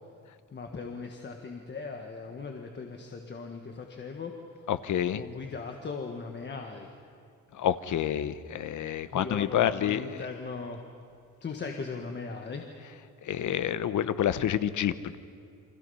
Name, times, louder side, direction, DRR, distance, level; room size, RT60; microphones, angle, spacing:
voice 1, 0.5-4.3 5.1-6.9 9.1-10.8 11.4-12.7, left 4 dB, 35° left, 3 dB, 1.5 m, -38 dB
voice 2, 4.7-5.2 7.5-10.0 13.2-15.2, left 10 dB, 65° left, 13 dB, 1.0 m, -28 dB
30.0 x 25.0 x 5.6 m, 2.4 s
wide cardioid pair, 170°, 32 cm